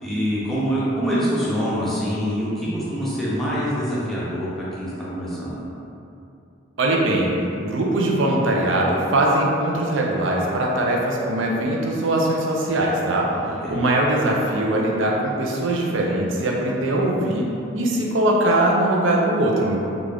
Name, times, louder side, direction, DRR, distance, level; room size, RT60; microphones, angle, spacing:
voice 1, 0.0-4.5 4.8-5.5 13.5-13.7, equal, ahead, -10 dB, 0.7 m, -25 dB
voice 2, 6.8-7.3 7.6-13.3 13.7-19.8, right 1 dB, 65° right, -2 dB, 0.5 m, -21 dB
3.4 x 2.4 x 3.3 m, 2.7 s
head